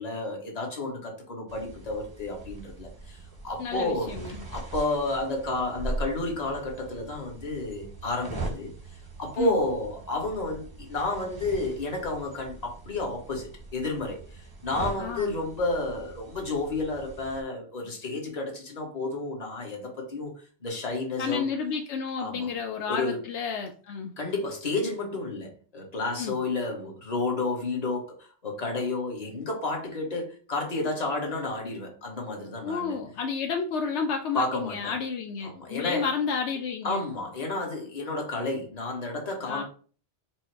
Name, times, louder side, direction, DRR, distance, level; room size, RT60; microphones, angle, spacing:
voice 1, 0.0-3.2 3.4-4.1 4.5-8.7 9.2-14.2 14.6-20.3 20.6-21.5 22.2-22.5 22.9-23.2 24.2-28.1 28.4-32.9 34.3-34.9 35.4-36.1 36.8-39.6, left 2 dB, 35° left, 0 dB, 1.2 m, -31 dB
sound 1, 1.5-17.4, right 2 dB, 25° right, 0.6 m, -41 dB
voice 2, 3.6-4.4 9.4-9.6 15.0-15.4 21.2-24.1 26.2-26.4 32.6-37.0 39.4-39.6, left 6 dB, 80° left, 4 dB, 0.9 m, -31 dB
4.4 x 2.1 x 4.5 m, 0.40 s
omnidirectional pair, 1.2 m